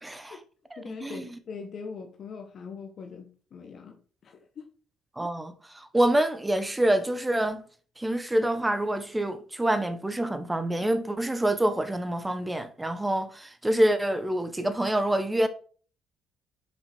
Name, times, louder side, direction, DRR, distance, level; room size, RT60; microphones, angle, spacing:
voice 1, 0.0-0.4 0.7-1.3 5.2-7.6 8.0-15.5, right 1 dB, 10° right, 0.9 m, -26 dB
voice 2, 0.8-4.7, left 5 dB, 50° left, 1.0 m, -42 dB
6.2 x 5.1 x 4.3 m
cardioid pair, 90°, 0 cm